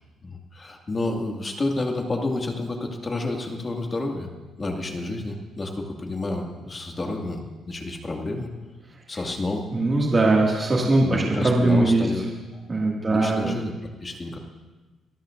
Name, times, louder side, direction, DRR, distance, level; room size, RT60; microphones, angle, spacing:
voice 1, 0.2-4.3 4.6-8.5 9.1-9.7 11.0-12.2 12.5-12.6 13.1-13.7 14.0-14.4, left 2 dB, 30° left, 2 dB, 2.1 m, -30 dB
voice 2, 9.7-12.1 12.7-13.6, right 2 dB, 30° right, -3 dB, 2.1 m, -20 dB
25.5 x 13.5 x 2.6 m, 1.2 s
cardioid pair, 90°, 0 cm